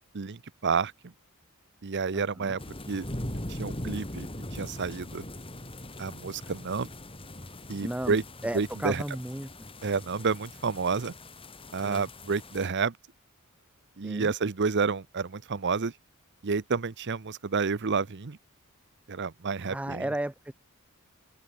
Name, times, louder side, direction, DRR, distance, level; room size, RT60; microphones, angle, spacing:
voice 1, 0.1-1.1 1.8-2.6 2.9-3.1 3.5-5.2 6.0-6.9 7.7-8.2 8.5-9.0 9.8-11.1 11.7-13.0 14.0-15.9 16.4-18.4 19.1-20.1, right 5 dB, 55° right, 0.7 m, -30 dB
voice 2, 2.1-2.6 7.8-8.2 8.4-9.7 11.8-12.1 14.0-14.3 19.6-20.5, right 1 dB, 5° right, 0.4 m, -34 dB
sound 1, 2.6-12.7, left 1 dB, 25° left, 4.4 m, -41 dB
open air
head